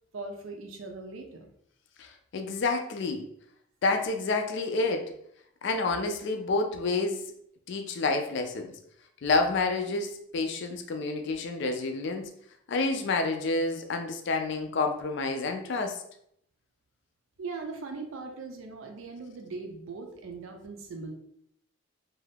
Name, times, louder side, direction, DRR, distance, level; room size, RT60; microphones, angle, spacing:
voice 1, 0.1-1.5 17.4-21.1, right 3 dB, 70° right, 3 dB, 0.5 m, -40 dB
voice 2, 2.0-3.2 3.8-5.1 5.6-7.3 7.7-8.7 9.2-12.3 12.7-16.0, left 3 dB, 55° left, 5 dB, 0.3 m, -29 dB
2.6 x 2.3 x 3.3 m, 0.71 s
head